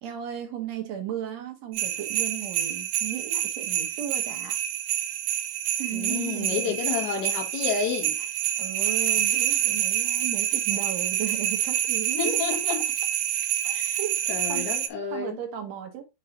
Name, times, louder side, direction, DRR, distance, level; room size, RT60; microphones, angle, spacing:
voice 1, 0.0-4.6 5.8-6.8 8.2-8.3 8.6-12.8 13.6-14.2 14.5-14.7 15.1-16.0, right 10 dB, 60° right, 1.9 m, -35 dB
sound 1, 1.7-14.9, right 11 dB, 85° right, 2.7 m, -27 dB
voice 2, 5.9-8.2 12.2-12.8 13.7-14.0 14.3-15.4, left 6 dB, 70° left, 1.0 m, -30 dB
7.0 x 2.7 x 5.8 m
omnidirectional pair, 4.9 m